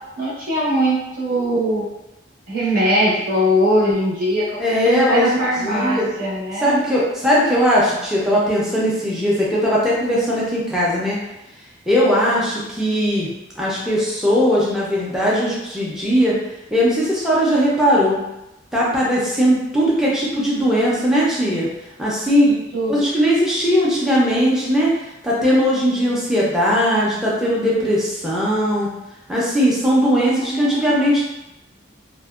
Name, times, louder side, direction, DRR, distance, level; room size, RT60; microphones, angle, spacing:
voice 1, 0.2-1.9 2.5-6.8 22.7-23.0 30.1-31.0, equal, 50° right, -8 dB, 0.8 m, -21 dB
voice 2, 4.6-6.1 6.6-11.2 11.9-13.3 13.6-16.4 16.7-18.2 18.7-21.7 22.0-22.5 22.9-24.9 25.2-28.9 29.3-31.2, equal, 5° right, -7 dB, 0.5 m, -19 dB
2.6 x 2.1 x 2.3 m, 0.94 s
head